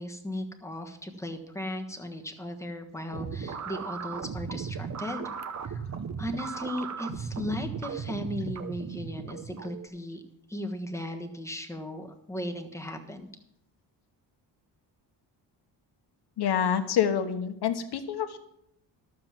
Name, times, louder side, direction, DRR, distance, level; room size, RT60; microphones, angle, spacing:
voice 1, 0.0-5.3 5.6-10.2 10.5-13.3, left 1 dB, 5° left, 3 dB, 1.3 m, -37 dB
sound 1, 3.1-9.9, right 6 dB, 40° right, 0.9 m, -36 dB
voice 2, 16.4-18.4, left 8 dB, 65° left, 8 dB, 1.2 m, -27 dB
11.5 x 7.6 x 5.9 m, 0.79 s
cardioid pair, 100°, 43 cm